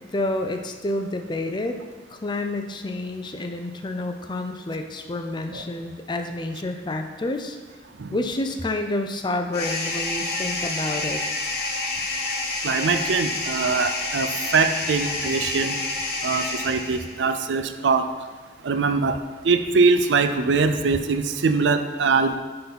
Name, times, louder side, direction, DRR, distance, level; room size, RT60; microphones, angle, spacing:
voice 1, 0.1-1.8 2.1-7.6 8.1-11.2, left 2 dB, 25° left, 6 dB, 0.4 m, -29 dB
sound 1, 9.5-17.3, left 2 dB, 55° left, 1.2 m, -28 dB
voice 2, 12.6-15.7 16.2-18.0 18.6-19.2 19.4-22.4, right 4 dB, 75° right, 9 dB, 0.5 m, -22 dB
9.9 x 3.9 x 4.0 m, 1.4 s
head